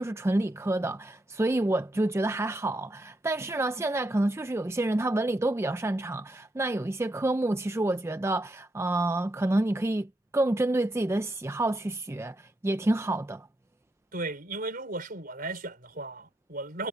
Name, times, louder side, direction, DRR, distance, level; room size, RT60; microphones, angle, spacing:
voice 1, 0.0-13.5, right 2 dB, 15° right, 0.4 m, -28 dB
voice 2, 14.1-16.9, right 2 dB, 50° right, 4.4 m, -36 dB
head